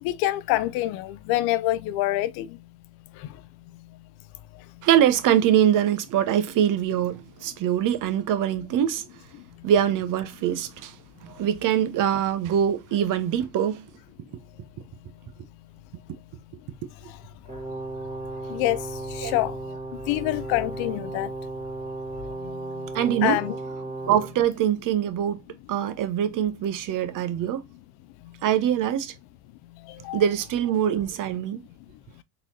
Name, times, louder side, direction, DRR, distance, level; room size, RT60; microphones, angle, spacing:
voice 1, 0.0-2.6 3.2-3.3 18.5-19.8 20.1-21.3 22.4-22.9 23.2-23.6 29.9-30.2, left 15 dB, 55° left, 0.5 m, -26 dB
voice 2, 4.8-9.1 9.6-11.0 11.2-13.9 19.2-19.3 22.9-23.4 24.1-25.4 25.7-27.6 28.4-29.1 30.1-31.6, right 10 dB, 40° right, 0.7 m, -23 dB
Brass instrument, 17.5-24.4, right 3 dB, 15° right, 1.9 m, -35 dB
3.9 x 3.1 x 2.7 m
supercardioid pair, 90°, 47 cm